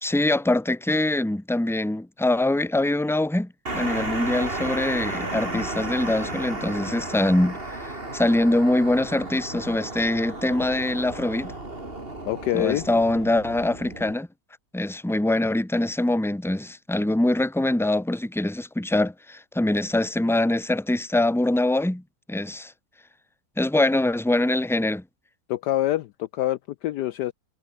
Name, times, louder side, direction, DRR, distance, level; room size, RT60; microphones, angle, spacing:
voice 1, 0.0-11.5 12.5-14.3 14.7-22.0 22.3-22.7 23.6-25.0, left 1 dB, ahead, 1.6 m, -23 dB
sound 1, 3.7-14.1, right 2 dB, 30° right, 4.5 m, -33 dB
voice 2, 12.2-12.9 25.5-27.3, left 14 dB, 75° left, 1.1 m, -26 dB
omnidirectional pair, 2.1 m